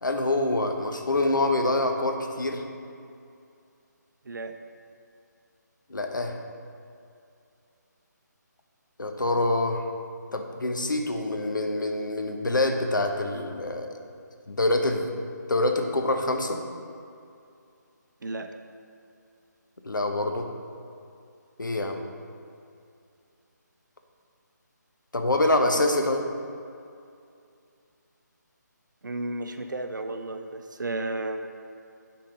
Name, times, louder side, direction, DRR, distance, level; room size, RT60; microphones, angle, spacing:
voice 1, 0.0-2.6 5.9-6.4 9.0-9.9 10.3-13.9 14.5-15.1 15.5-16.6 19.8-20.5 21.6-22.0 25.1-26.3, left 2 dB, 90° left, 4 dB, 1.0 m, -25 dB
voice 2, 4.2-4.6 18.2-18.5 29.0-31.5, right 2 dB, 75° right, 7 dB, 0.7 m, -33 dB
8.7 x 5.8 x 3.8 m, 2.5 s
figure-of-eight pair, 155°, 10 cm